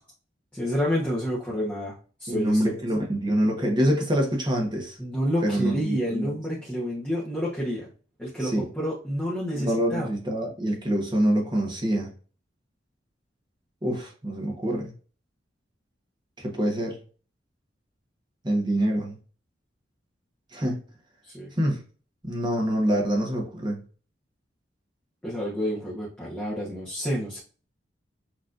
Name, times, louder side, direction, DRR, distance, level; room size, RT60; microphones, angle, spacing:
voice 1, 0.5-1.9 2.2-2.7 5.0-7.9 8.2-10.1 21.3-21.5 25.2-27.4, equal, 5° left, 1.2 m, -29 dB
voice 2, 2.3-5.0 5.4-6.3 8.4-8.6 9.5-12.1 13.8-14.9 16.4-17.0 18.4-19.2 20.5-20.8 21.6-21.8 22.2-23.8, right 1 dB, 25° right, 1.2 m, -25 dB
6.2 x 3.1 x 2.6 m
head